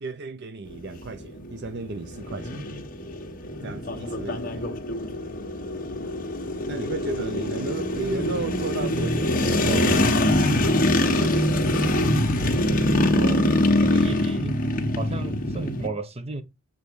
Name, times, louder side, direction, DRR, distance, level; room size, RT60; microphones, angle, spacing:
voice 1, 0.0-2.7 3.6-4.7 6.7-10.1 10.9-12.6, right 3 dB, 50° right, 0.6 m, -34 dB
sound 1, 0.7-15.9, left 1 dB, 40° left, 1.5 m, -24 dB
voice 2, 13.1-13.5 13.8-14.6 15.0-16.4, right 3 dB, 30° right, 1.0 m, -33 dB
8.4 x 3.6 x 5.4 m
head